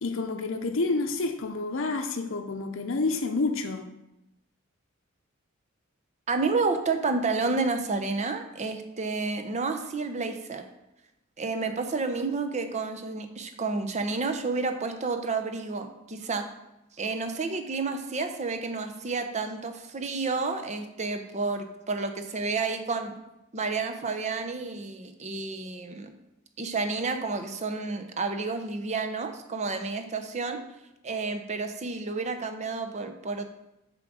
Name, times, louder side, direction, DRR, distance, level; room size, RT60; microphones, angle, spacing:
voice 1, 0.0-3.8, left 3 dB, 65° left, 4 dB, 0.6 m, -29 dB
voice 2, 6.3-10.6 11.4-16.5 17.0-23.1 23.5-26.1 26.6-30.6 31.0-33.4, right 4 dB, 35° right, 7 dB, 0.7 m, -30 dB
7.2 x 3.8 x 6.1 m, 0.89 s
head